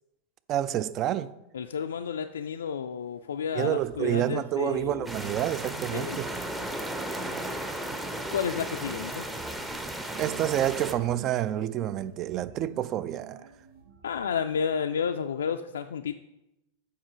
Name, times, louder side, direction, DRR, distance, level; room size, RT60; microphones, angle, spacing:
voice 1, 0.5-1.3 3.5-6.3 10.2-13.5, right 12 dB, 35° right, 0.4 m, -28 dB
voice 2, 1.5-5.1 5.9-6.2 8.3-9.3 14.0-16.1, left 7 dB, 65° left, 0.3 m, -31 dB
sound 1, 3.0-3.1 3.4-14.6, right 4 dB, 65° right, 3.0 m, -49 dB
sound 2, 5.1-10.9, right 1 dB, 10° right, 0.7 m, -35 dB
7.3 x 5.5 x 4.9 m
figure-of-eight pair, 90°, 0 cm